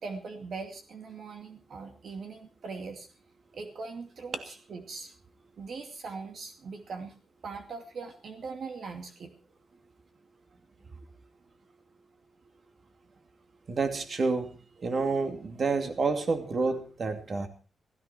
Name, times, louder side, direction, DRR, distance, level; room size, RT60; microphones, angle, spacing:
voice 1, 0.0-3.1 3.5-5.1 5.6-9.3, right 4 dB, 65° right, 5 dB, 2.4 m, -41 dB
voice 2, 13.7-17.5, right 4 dB, 45° right, 7 dB, 2.6 m, -29 dB
16.5 x 16.0 x 4.5 m, 0.38 s
cardioid pair, 110°, 0 cm